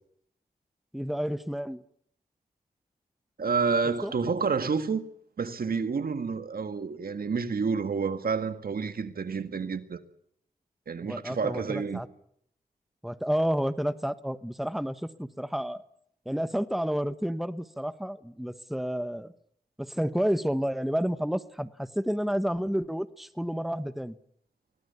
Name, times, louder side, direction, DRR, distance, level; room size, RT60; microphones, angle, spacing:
voice 1, 0.9-1.8 4.0-4.1 11.0-12.1 13.0-15.8 16.2-19.3 19.8-24.2, equal, ahead, 1.3 m, -30 dB
voice 2, 3.4-5.0 5.4-10.0 10.9-12.1, right 5 dB, 70° right, 1.8 m, -29 dB
24.5 x 18.0 x 6.9 m
cardioid pair, 40°, 16 cm